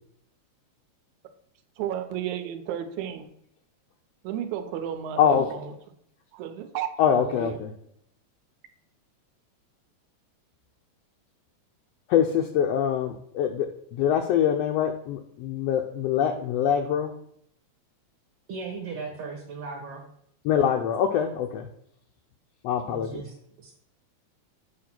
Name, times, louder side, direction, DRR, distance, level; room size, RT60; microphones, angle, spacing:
voice 1, 1.8-3.3 4.2-5.8 6.3-6.9 7.2-7.7, right 10 dB, 80° right, 7 dB, 2.1 m, -33 dB
voice 2, 7.0-7.5 12.1-17.1 20.4-21.7 22.6-23.2, left 8 dB, 80° left, 4 dB, 1.4 m, -24 dB
voice 3, 18.5-20.0 22.9-23.7, right 4 dB, 60° right, -1 dB, 1.9 m, -37 dB
8.0 x 2.9 x 5.9 m, 0.70 s
omnidirectional pair, 3.4 m